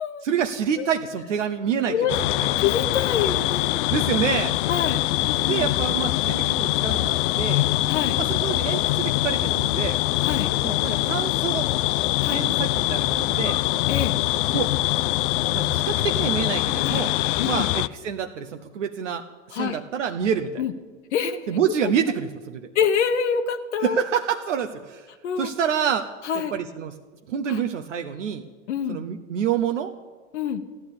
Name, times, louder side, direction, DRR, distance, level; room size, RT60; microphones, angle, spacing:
voice 1, 0.2-2.0 3.9-4.6 5.5-7.7 8.2-10.0 10.6-11.7 12.3-13.6 14.5-14.7 15.5-17.1 17.5-19.3 19.5-20.6 21.5-22.7 23.8-25.1 25.4-26.1 26.5-26.9 27.3-28.4 28.9-29.9, right 8 dB, 65° right, 6 dB, 0.9 m, -27 dB
voice 2, 1.9-2.2 2.6-3.9 4.7-5.6 7.9-8.2 10.2-10.5 12.2-12.4 13.9-14.2 16.8-17.1 17.4-17.7 19.5-19.8 20.6-20.7 21.1-21.4 22.7-24.1 25.2-25.5 26.2-26.5 27.5-27.6 28.7-29.0 30.3-30.6, left 7 dB, 60° left, 7 dB, 1.0 m, -26 dB
sound 1, 2.1-17.9, left 17 dB, 45° left, 0.4 m, -23 dB
15.0 x 11.0 x 8.7 m, 1.4 s
figure-of-eight pair, 85°, 39 cm